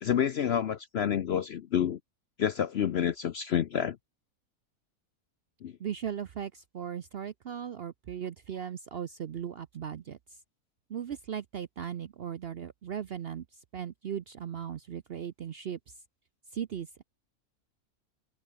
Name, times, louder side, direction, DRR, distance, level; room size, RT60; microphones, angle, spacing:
voice 1, 0.0-2.0 2.4-4.0 5.6-5.7, left 9 dB, 60° left, 0.7 m, -28 dB
voice 2, 5.8-10.4 10.9-16.0 16.5-17.0, right 8 dB, 55° right, 0.7 m, -38 dB
open air
omnidirectional pair, 1.6 m